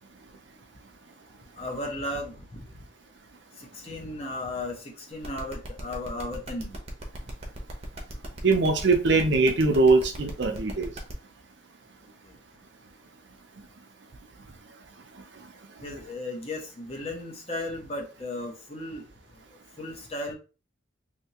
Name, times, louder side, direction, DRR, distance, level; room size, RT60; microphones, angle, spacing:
voice 1, 1.6-2.6 3.8-4.8 5.1-6.8 15.8-19.0 19.8-20.3, left 1 dB, 30° left, 0 dB, 0.8 m, -35 dB
sound 1, 5.2-11.1, right 2 dB, 30° right, 0.7 m, -41 dB
voice 2, 8.4-10.9, right 3 dB, 60° right, 5 dB, 0.6 m, -21 dB
3.4 x 2.7 x 2.9 m, 0.33 s
head